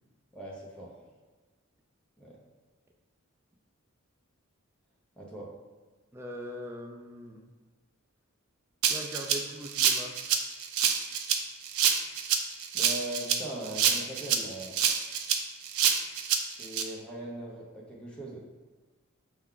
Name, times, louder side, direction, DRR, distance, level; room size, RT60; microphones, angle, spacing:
voice 1, 0.3-1.0 2.2-2.4 5.2-5.5 12.7-14.8 16.5-18.4, right 1 dB, 5° left, -5 dB, 0.7 m, -40 dB
voice 2, 6.1-7.4 8.9-10.2, equal, 10° right, 1 dB, 0.3 m, -41 dB
Rattle (instrument), 8.8-16.8, right 7 dB, 85° right, 0.4 m, -27 dB
4.4 x 2.3 x 3.7 m, 1.3 s
head